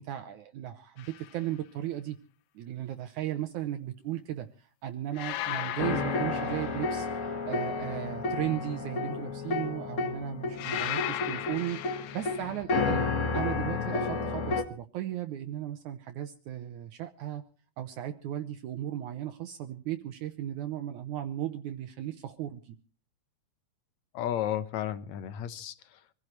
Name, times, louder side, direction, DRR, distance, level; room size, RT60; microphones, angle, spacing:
voice 1, 0.0-2.2 2.6-13.0 13.3-17.4 17.8-22.8, right 12 dB, 70° right, 2.2 m, -36 dB
sound 1, 1.0-1.3 5.2-7.3 10.6-12.6, left 13 dB, 90° left, 2.7 m, -37 dB
sound 2, 5.8-14.6, left 4 dB, 50° left, 0.9 m, -31 dB
voice 2, 24.1-26.1, left 11 dB, 65° left, 2.1 m, -33 dB
25.5 x 16.0 x 3.2 m
omnidirectional pair, 3.9 m